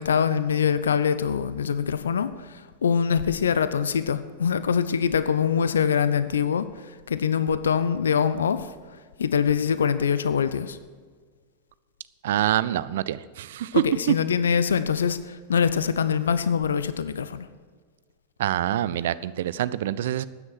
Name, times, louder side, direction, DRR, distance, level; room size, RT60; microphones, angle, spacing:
voice 1, 0.0-8.7 9.2-10.8 13.7-17.5, left 7 dB, 70° left, 13 dB, 0.6 m, -24 dB
voice 2, 12.2-13.8 18.4-20.2, right 12 dB, 55° right, 17 dB, 0.5 m, -25 dB
13.0 x 9.7 x 6.2 m, 1.6 s
figure-of-eight pair, 90°, 0 cm